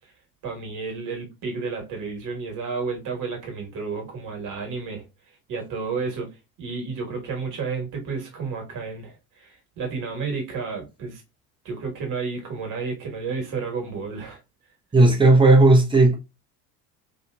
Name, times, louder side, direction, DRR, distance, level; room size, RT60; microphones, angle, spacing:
voice 1, 0.4-5.0 5.5-6.3 6.6-11.2 11.6-14.4, right 4 dB, 40° right, 1.4 m, -31 dB
voice 2, 14.9-16.1, right 2 dB, 10° right, 0.7 m, -14 dB
2.9 x 2.7 x 2.3 m
figure-of-eight pair, 65°, 48 cm